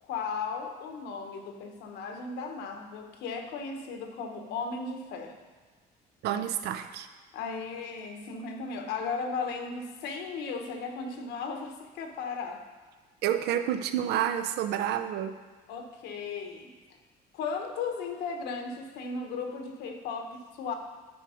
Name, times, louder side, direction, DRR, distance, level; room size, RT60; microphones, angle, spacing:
voice 1, 0.0-5.4 7.3-12.6 15.7-16.7 17.3-20.7, left 5 dB, 80° left, 5 dB, 1.1 m, -36 dB
voice 2, 6.2-7.1 13.2-15.4, right 10 dB, 75° right, 9 dB, 0.6 m, -29 dB
9.8 x 4.8 x 5.0 m, 1.5 s
cardioid pair, 110°, 17 cm